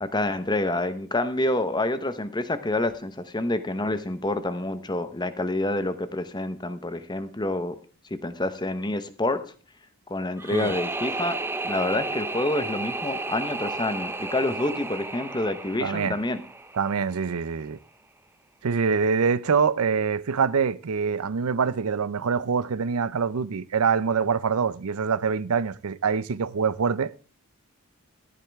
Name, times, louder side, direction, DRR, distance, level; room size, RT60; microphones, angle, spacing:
voice 1, 0.0-7.8 8.1-9.4 10.1-11.4 11.6-16.4, left 2 dB, 20° left, 1.0 m, -27 dB
sound 1, 10.4-17.4, right 2 dB, 10° right, 0.6 m, -33 dB
voice 2, 15.8-16.2 16.7-17.8 18.6-27.1, right 5 dB, 80° right, 0.6 m, -25 dB
14.5 x 11.0 x 3.5 m
head